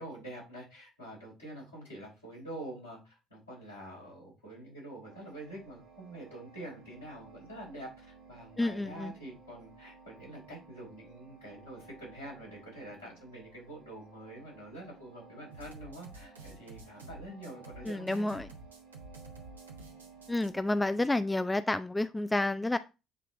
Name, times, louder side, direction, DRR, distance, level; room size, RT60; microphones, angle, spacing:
voice 1, 0.0-18.4, right 1 dB, 80° left, -6 dB, 3.5 m, -46 dB
sound 1, 5.0-20.9, right 4 dB, 65° right, 1.3 m, -56 dB
voice 2, 8.6-9.1 17.8-18.5 20.3-22.8, left 2 dB, 10° left, 12 dB, 0.4 m, -30 dB
sound 2, 15.5-20.5, right 3 dB, 80° right, 0.8 m, -50 dB
7.8 x 3.3 x 3.6 m, 0.28 s
figure-of-eight pair, 50°, 0 cm